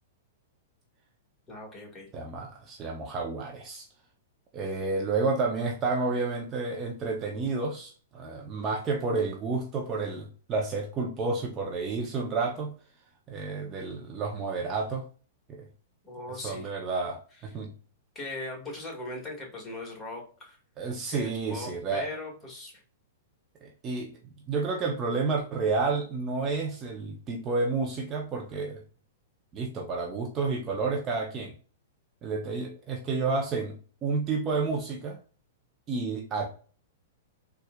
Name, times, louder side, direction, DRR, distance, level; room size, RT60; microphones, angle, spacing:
voice 1, 1.5-2.1 16.0-16.7 18.1-20.6 21.1-22.7, left 2 dB, 15° left, 1.6 m, -39 dB
voice 2, 2.1-3.9 4.5-12.7 13.3-15.1 15.5-15.6 16.3-17.7 20.8-22.1 23.6-24.2 24.5-28.8 29.5-31.5 32.2-33.8 34.0-35.2 35.9-36.5, right 4 dB, 30° right, 0.6 m, -30 dB
4.2 x 2.3 x 2.3 m
hypercardioid pair, 110°, 0 cm